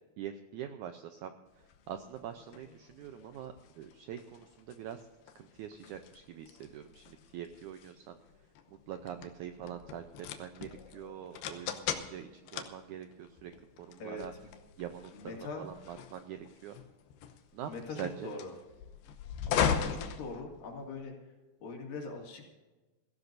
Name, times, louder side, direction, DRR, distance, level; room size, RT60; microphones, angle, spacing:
voice 1, 0.2-1.3 1.9-5.0 5.3-8.2 8.9-10.0 10.4-13.5 13.8-14.3 14.8-16.8 17.5-17.7 18.0-18.3, right 10 dB, 90° right, 7 dB, 1.7 m, -44 dB
sound 1, 1.6-21.0, left 8 dB, 85° left, 2.9 m, -39 dB
voice 2, 15.1-15.7 17.7-18.5 19.4-21.1 21.6-22.5, left 3 dB, 70° left, 0 dB, 4.1 m, -42 dB
22.5 x 14.5 x 2.7 m, 1.2 s
omnidirectional pair, 4.4 m